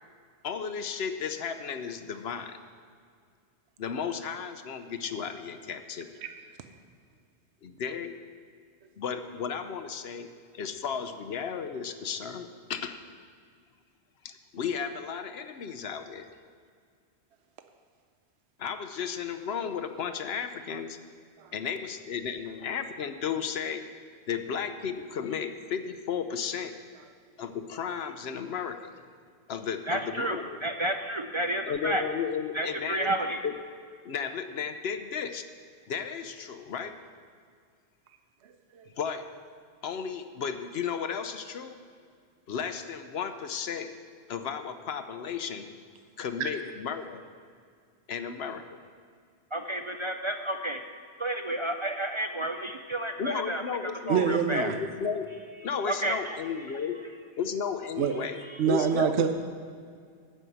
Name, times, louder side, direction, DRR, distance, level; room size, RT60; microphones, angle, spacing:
voice 1, 0.4-2.6 3.8-6.1 7.6-8.1 9.0-10.3 10.5-13.0 14.2-16.3 18.6-21.0 21.5-23.9 24.3-26.7 27.4-28.9 29.5-30.6 31.6-33.1 33.4-33.6 34.0-35.4 35.9-37.0 39.0-39.3 39.8-41.8 42.5-43.9 44.3-45.7 46.2-47.2 48.1-48.6 53.2-55.3 55.6-57.0 57.4-58.4 58.7-59.3, left 7 dB, 70° left, 9 dB, 0.9 m, -34 dB
voice 2, 29.9-32.0 32.5-33.4 49.5-50.8 51.2-53.6 54.1-54.7 55.9-56.4 56.7-56.8 58.5-58.6, right 1 dB, 45° right, 6 dB, 0.4 m, -31 dB
voice 3, 54.1-54.8 58.0-58.1 58.6-59.3, right 8 dB, 75° right, 7 dB, 1.0 m, -25 dB
12.5 x 5.7 x 7.9 m, 2.1 s
omnidirectional pair, 1.1 m